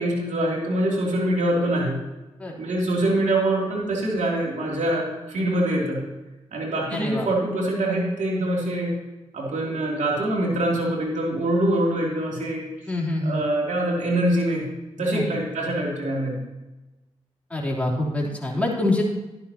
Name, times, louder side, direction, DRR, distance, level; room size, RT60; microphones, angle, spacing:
voice 1, 0.0-2.1 2.6-6.1 6.5-8.9 9.3-12.6 13.2-14.7 15.0-16.4, right 1 dB, 65° right, -3 dB, 2.8 m, -24 dB
voice 2, 6.9-7.3 12.9-13.4 15.1-15.2 17.5-19.0, left 2 dB, 10° left, -4 dB, 3.4 m, -25 dB
12.0 x 10.5 x 2.9 m, 1.1 s
supercardioid pair, 40°, 13 cm